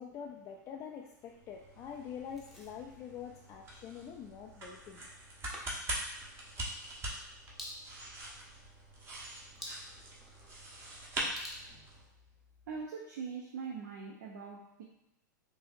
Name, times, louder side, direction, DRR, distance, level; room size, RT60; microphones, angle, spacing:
voice 1, 0.0-5.1, left 7 dB, 30° left, 0 dB, 0.4 m, -45 dB
sound 1, 1.3-12.1, right 1 dB, 25° right, 1.0 m, -43 dB
sound 2, 2.3-12.9, equal, ahead, 0.8 m, -53 dB
voice 2, 12.7-14.8, right 5 dB, 65° right, -2 dB, 0.7 m, -42 dB
4.9 x 2.8 x 2.5 m, 0.82 s
hypercardioid pair, 110°, 10 cm